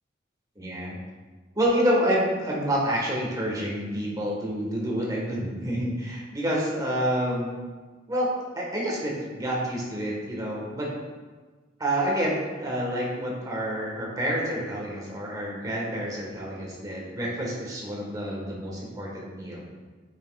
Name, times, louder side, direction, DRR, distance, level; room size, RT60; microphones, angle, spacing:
voice 1, 0.6-1.0 1.5-7.6 8.1-8.3 8.5-10.9 11.8-19.6, equal, 20° right, -4 dB, 1.5 m, -28 dB
8.3 x 6.0 x 2.4 m, 1.3 s
head